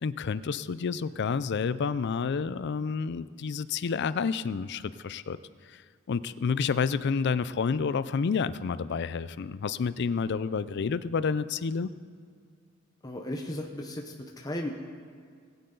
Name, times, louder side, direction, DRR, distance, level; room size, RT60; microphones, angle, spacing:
voice 1, 0.0-5.4 5.7-5.8 6.1-11.9, left 5 dB, 55° left, 16 dB, 0.4 m, -29 dB
voice 2, 13.0-14.7, left 1 dB, 20° left, 1 dB, 0.8 m, -35 dB
20.0 x 8.8 x 3.9 m, 2.1 s
head